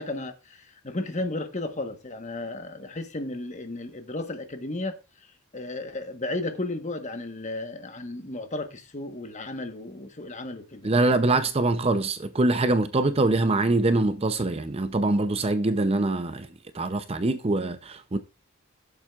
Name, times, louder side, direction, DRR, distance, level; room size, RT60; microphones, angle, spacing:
voice 1, 0.0-5.0 5.5-10.9, left 2 dB, 30° left, 1.2 m, -34 dB
voice 2, 10.8-16.5 16.7-18.2, right 2 dB, 25° right, 0.5 m, -24 dB
15.5 x 7.3 x 2.4 m
head